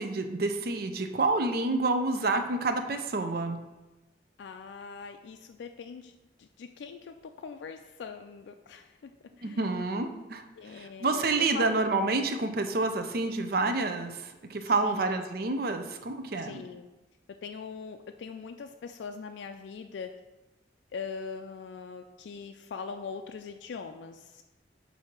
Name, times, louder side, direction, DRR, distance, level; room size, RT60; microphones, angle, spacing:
voice 1, 0.0-3.6 9.4-16.6, right 3 dB, 55° right, 7 dB, 0.6 m, -29 dB
voice 2, 4.4-6.1 6.4-9.6 10.6-11.8 14.8-15.2 16.4-16.9 17.4-20.2 20.9-24.4, left 5 dB, 75° left, 7 dB, 0.3 m, -42 dB
7.5 x 2.7 x 5.9 m, 1.1 s
head